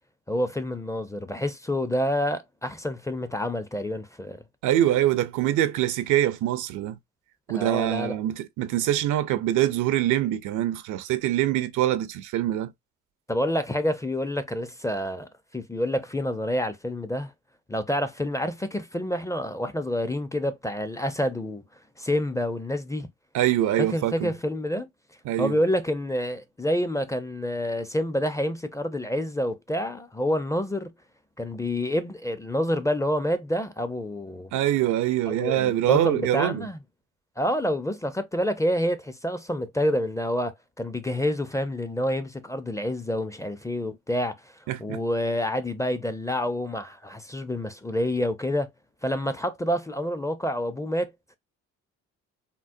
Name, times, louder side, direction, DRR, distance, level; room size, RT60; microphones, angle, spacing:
voice 1, 0.3-4.4 7.5-8.2 13.3-17.3 17.7-21.6 22.0-23.1 23.9-24.9 25.4-30.9 31.4-34.5 35.3-36.8 37.4-44.4 44.8-48.7 49.0-51.1, equal, 10° left, 0.4 m, -28 dB
voice 2, 4.6-7.0 7.5-12.7 23.3-24.3 25.2-25.6 34.5-36.7 44.7-45.0, right 12 dB, 80° right, 0.5 m, -24 dB
3.7 x 2.1 x 2.5 m
cardioid pair, 90°, 30 cm